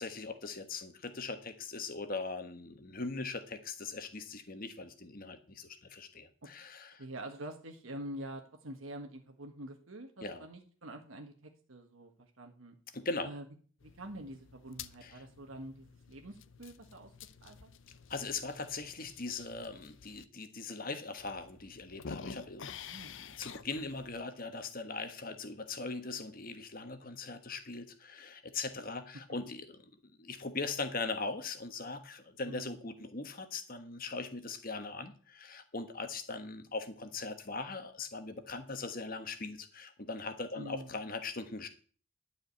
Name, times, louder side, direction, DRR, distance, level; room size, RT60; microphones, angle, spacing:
voice 1, 0.0-7.0 10.2-10.5 12.9-13.3 15.0-15.1 18.1-22.7 23.4-29.8 30.2-41.7, left 3 dB, 45° left, 9 dB, 1.3 m, -40 dB
voice 2, 7.0-12.8 13.2-13.5 13.8-17.1 17.4-17.7 22.9-23.1 32.4-32.8 40.6-41.0, right 1 dB, 75° right, 4 dB, 1.5 m, -46 dB
sound 1, 13.8-20.2 20.8-20.9 21.2-24.2, left 6 dB, 65° left, 0.6 m, -50 dB
12.0 x 5.1 x 8.4 m, 0.42 s
head